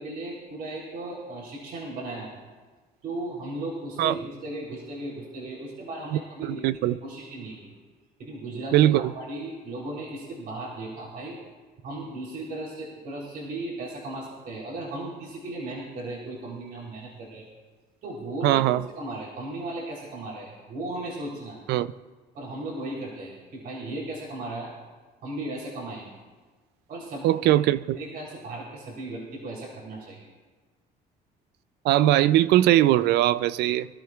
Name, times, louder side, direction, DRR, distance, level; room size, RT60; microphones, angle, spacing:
voice 1, 0.0-2.3 3.0-6.7 7.0-7.8 8.2-11.4 11.8-17.5 18.0-21.6 22.3-24.7 25.2-26.1 26.9-27.6 27.9-30.3, right 2 dB, 65° right, 3.7 m, -36 dB
voice 2, 6.5-7.0 8.7-9.1 18.4-18.8 21.7-21.9 27.2-28.0 31.8-33.9, right 13 dB, 80° right, 0.5 m, -20 dB
24.0 x 13.0 x 2.4 m
cardioid pair, 110°, 17 cm